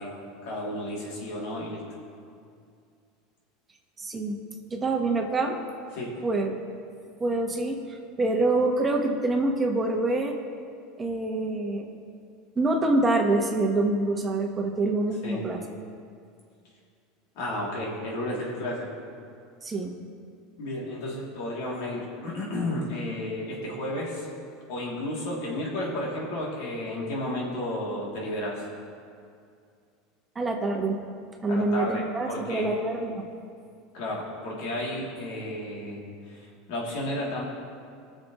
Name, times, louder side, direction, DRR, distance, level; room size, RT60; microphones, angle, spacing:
voice 1, 0.0-1.9 5.9-6.2 15.2-15.5 17.3-18.9 20.6-24.3 24.7-28.7 31.5-32.7 33.9-37.4, left 1 dB, 65° left, -4 dB, 2.9 m, -32 dB
voice 2, 4.0-4.4 4.7-5.6 6.2-6.6 7.2-10.3 11.0-11.9 12.5-15.6 19.6-19.9 30.3-31.0 31.4-33.3, right 2 dB, 20° right, 1 dB, 1.3 m, -26 dB
20.5 x 6.9 x 3.1 m, 2.3 s
supercardioid pair, 105°, 0 cm